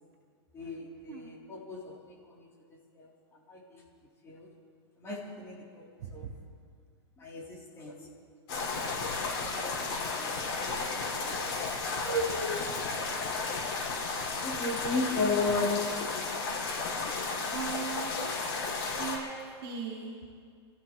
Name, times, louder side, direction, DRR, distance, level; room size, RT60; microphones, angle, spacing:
voice 1, 0.5-2.5 3.0-3.1 3.5-3.8 4.2-4.5 5.0-6.3 7.2-7.9 9.2-10.8 11.1-12.6 14.4-15.8, left 2 dB, 15° left, -4 dB, 3.3 m, -35 dB
sound 1, 8.5-19.2, left 4 dB, 55° left, 5.4 m, -33 dB
voice 2, 17.5-18.1 19.0-19.3 19.6-20.1, right 7 dB, 60° right, -5 dB, 4.2 m, -38 dB
29.0 x 15.5 x 3.1 m, 2.1 s
supercardioid pair, 155°, 15 cm